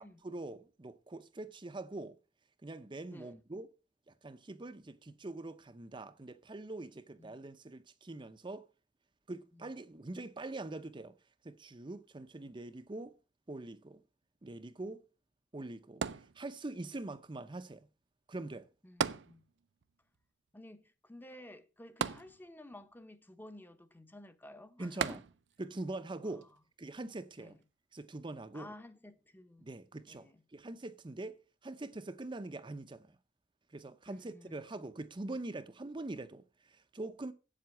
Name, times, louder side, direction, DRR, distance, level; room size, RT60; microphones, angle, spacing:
voice 1, 0.0-2.2 2.6-3.7 4.1-8.7 9.3-11.1 11.4-13.2 13.5-14.0 14.4-15.0 15.5-17.9 18.3-18.7 24.8-25.2 25.6-26.5 26.8-27.6 27.9-28.7 29.6-31.4 31.6-33.2 33.7-37.3, right 2 dB, 25° right, 0.6 m, -43 dB
voice 2, 7.2-7.5 9.5-9.7 18.8-19.4 20.5-25.2 26.2-26.3 27.4-27.6 28.5-29.7 30.1-30.4 34.1-34.8, left 1 dB, 10° left, 0.8 m, -53 dB
sound 1, 16.0-16.9 19.0-19.9 20.1-20.2 22.0-22.8 25.0-25.7 26.4-26.5, right 6 dB, 70° right, 0.6 m, -37 dB
8.1 x 7.7 x 8.1 m
head